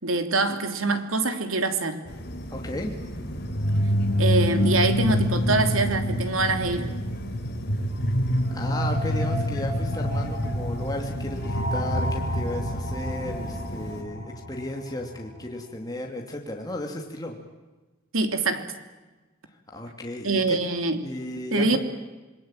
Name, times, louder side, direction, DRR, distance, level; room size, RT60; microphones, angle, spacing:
voice 1, 0.0-2.0 4.2-6.9 18.1-18.7 20.2-21.0 21.5-21.8, right 3 dB, 85° right, 8 dB, 3.0 m, -24 dB
sound 1, 2.0-14.0, equal, 55° left, 4.0 m, -36 dB
voice 2, 2.5-2.9 8.5-17.4 19.5-20.6 21.0-21.8, left 1 dB, 20° left, 2 dB, 2.5 m, -34 dB
sound 2, 3.4-15.2, equal, 75° left, 7.2 m, -27 dB
27.5 x 21.5 x 9.0 m, 1.2 s
head